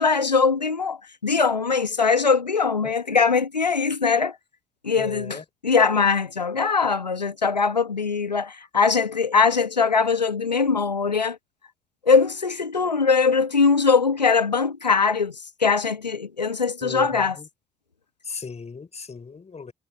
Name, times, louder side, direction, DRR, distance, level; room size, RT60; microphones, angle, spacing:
voice 1, 0.0-4.4 4.8-11.4 12.1-17.4, left 5 dB, 85° left, 1.3 m, -21 dB
voice 2, 2.8-3.2 5.0-5.4 16.8-17.5 18.3-19.7, left 5 dB, 30° left, 5.2 m, -37 dB
figure-of-eight pair, 40°, 21 cm